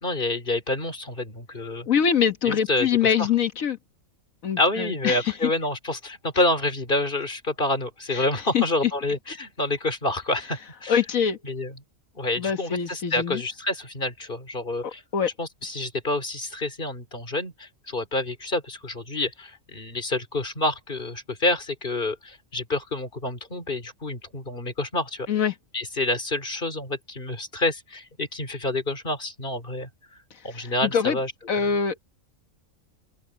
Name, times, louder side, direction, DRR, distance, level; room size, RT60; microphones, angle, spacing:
voice 1, 0.0-1.9 2.4-3.3 4.6-11.0 11.4-11.8 12.1-15.0 15.4-25.3 25.7-29.9 30.4-31.8, left 2 dB, 40° left, 3.2 m, -28 dB
voice 2, 1.9-3.8 4.4-5.2 8.1-8.2 8.5-8.6 10.9-11.4 12.4-13.4 14.8-15.3 25.3-25.5 30.5-31.2 31.5-31.9, left 7 dB, 75° left, 1.7 m, -24 dB
open air
omnidirectional pair, 1.4 m